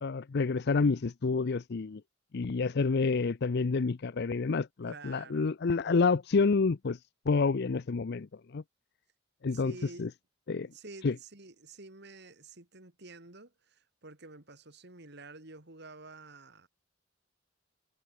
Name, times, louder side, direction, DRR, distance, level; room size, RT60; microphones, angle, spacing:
voice 1, 0.0-2.0 2.3-7.0 7.3-8.3 8.5-8.6 9.4-9.7 10.0-10.1 10.5-10.7 11.0-11.2, left 4 dB, 55° left, 0.5 m, -28 dB
voice 2, 4.9-5.5 9.5-10.1 10.6-16.7, right 3 dB, 60° right, 3.6 m, -50 dB
head